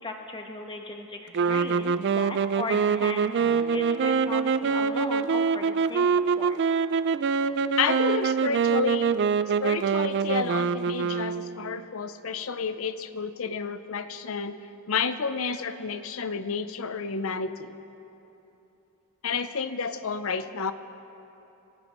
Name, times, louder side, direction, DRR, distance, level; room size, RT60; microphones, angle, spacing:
voice 1, 0.0-6.1 6.4-6.6, left 2 dB, 20° left, 2 dB, 1.2 m, -37 dB
sound 1, 1.3-11.8, right 6 dB, 50° right, 0.3 m, -25 dB
sound 2, 3.3-13.9, right 1 dB, 5° right, 4.1 m, -51 dB
voice 2, 7.8-9.2 9.6-14.6 14.9-17.8 19.2-20.7, left 5 dB, 65° left, 11 dB, 0.6 m, -30 dB
26.5 x 15.5 x 3.1 m, 3.0 s
head